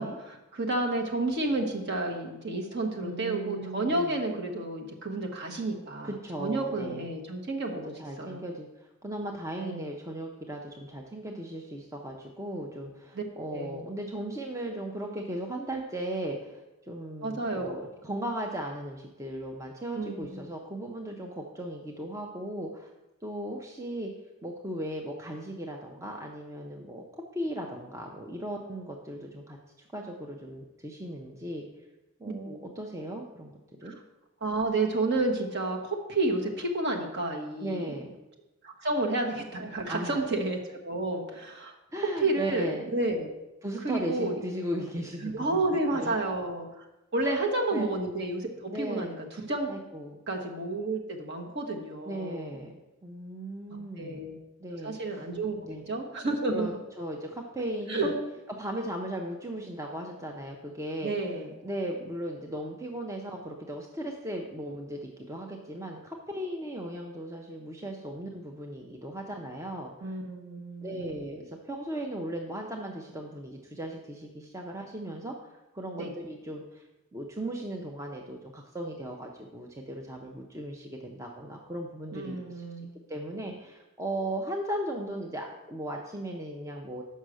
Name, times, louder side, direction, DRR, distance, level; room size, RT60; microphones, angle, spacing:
voice 1, 0.0-6.1 6.4-7.9 8.2-8.4 9.6-9.9 13.1-13.8 17.2-17.7 19.9-20.4 32.4-32.6 33.8-33.9 34.4-38.0 38.6-41.7 42.2-43.3 43.8-44.4 45.2-46.8 47.1-49.1 49.4-49.7 50.3-52.6 53.7-54.4 54.8-56.7 57.9-58.1 61.0-61.6 70.0-71.2 75.9-76.1 82.1-82.9, right 2 dB, 50° right, 1 dB, 1.1 m, -31 dB
voice 2, 3.0-4.2 6.0-7.1 8.0-8.7 9.0-16.6 16.9-22.9 23.2-24.1 24.4-31.7 32.2-33.5 33.8-34.0 37.6-38.1 39.9-40.2 41.9-42.8 43.6-45.6 45.9-46.2 47.2-47.9 48.7-49.1 49.7-50.2 52.1-52.7 53.0-54.3 54.6-55.2 55.6-55.8 56.5-58.1 58.6-61.1 61.6-70.1 70.8-76.8 77.1-82.6 83.1-87.0, right 1 dB, 15° right, 1 dB, 0.5 m, -37 dB
6.4 x 5.5 x 6.2 m, 1.0 s
head